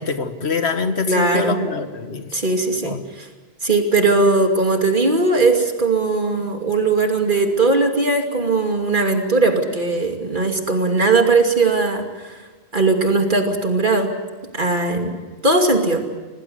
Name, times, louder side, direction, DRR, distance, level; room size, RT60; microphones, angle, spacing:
voice 1, 0.0-2.4 2.8-3.0, left 4 dB, 85° left, 8 dB, 1.8 m, -24 dB
voice 2, 1.1-1.6 2.3-3.3 3.6-12.4 12.7-14.1 14.5-15.1 15.4-16.0, right 3 dB, 50° right, 3 dB, 2.9 m, -19 dB
26.5 x 19.0 x 8.0 m, 1.3 s
omnidirectional pair, 1.1 m